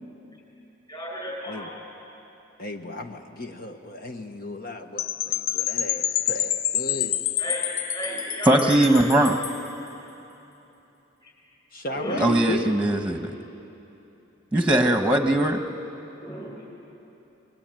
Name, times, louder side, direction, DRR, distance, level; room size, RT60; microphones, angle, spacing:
voice 1, 0.9-1.7 7.4-9.4 9.8-10.1 11.2-11.3 11.9-12.6 16.2-16.5, right 1 dB, 25° left, -1 dB, 7.6 m, -33 dB
voice 2, 2.6-7.2 11.7-12.8, left 1 dB, 45° left, 5 dB, 1.1 m, -35 dB
Percussion / Wind chime, 5.0-9.7, left 12 dB, 80° left, 0.5 m, -28 dB
voice 3, 8.5-9.3 12.2-13.3 14.5-15.6, right 1 dB, 5° right, 5 dB, 1.3 m, -20 dB
29.0 x 22.0 x 9.1 m, 3.0 s
head